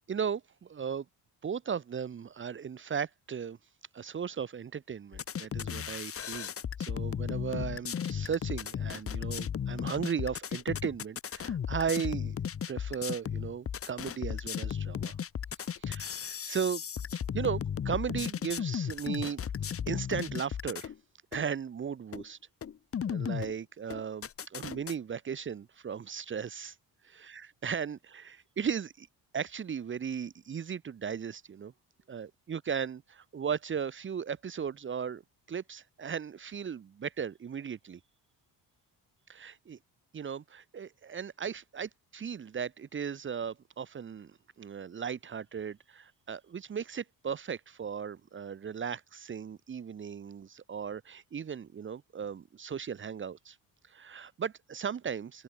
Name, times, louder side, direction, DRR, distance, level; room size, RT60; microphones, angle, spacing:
voice 1, 0.1-1.0 1.4-3.6 3.9-6.5 6.8-12.4 12.7-15.2 15.6-16.8 17.3-19.4 19.9-20.9 21.3-22.4 23.1-26.7 27.1-29.1 29.3-31.7 32.1-35.2 35.5-38.0 39.3-39.8 40.1-44.3 44.6-53.6 53.9-55.4, right 7 dB, 30° right, 1.4 m, -36 dB
sound 1, 5.1-20.9 21.3-21.4 22.1-22.2 22.6-23.5 23.9-24.9, left 8 dB, 35° left, 2.1 m, -35 dB
open air
cardioid pair, 170°, 38 cm